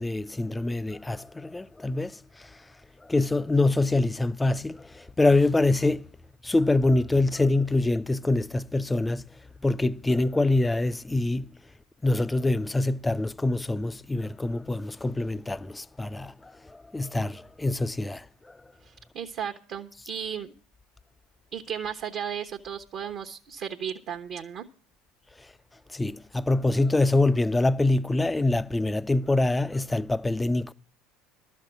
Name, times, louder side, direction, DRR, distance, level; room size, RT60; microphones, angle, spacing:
voice 1, 0.0-2.6 3.0-6.1 6.4-9.3 9.6-11.5 12.0-18.6 25.9-30.7, left 2 dB, 10° left, 0.5 m, -25 dB
voice 2, 18.8-20.5 21.5-24.6, right 8 dB, 50° right, 1.1 m, -35 dB
13.0 x 6.5 x 8.2 m
figure-of-eight pair, 65°, 0 cm